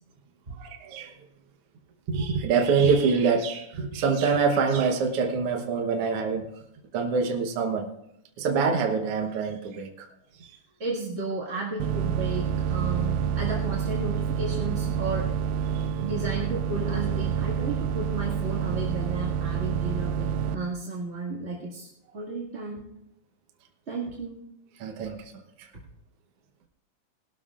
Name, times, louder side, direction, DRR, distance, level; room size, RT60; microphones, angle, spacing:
voice 1, 0.6-1.1 2.1-6.5 6.9-7.9 8.4-10.1 10.4-10.5 15.7-15.9 24.8-25.3 25.6-25.7, right 5 dB, 65° right, 3 dB, 1.5 m, -25 dB
voice 2, 10.8-15.3 16.0-22.9 23.9-24.4, right 3 dB, 30° right, -5 dB, 1.4 m, -33 dB
sound 1, 11.8-20.6, right 8 dB, 85° right, 2.4 m, -28 dB
20.5 x 13.0 x 2.5 m, 0.77 s
omnidirectional pair, 4.0 m